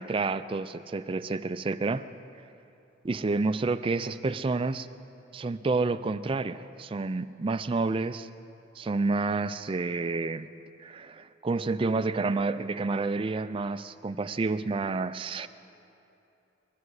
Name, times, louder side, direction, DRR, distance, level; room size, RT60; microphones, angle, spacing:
voice 1, 0.0-2.0 3.0-4.9 5.3-8.3 8.8-10.5 10.8-15.5, right 3 dB, 25° right, 11 dB, 0.3 m, -29 dB
22.0 x 12.0 x 4.8 m, 2.8 s
head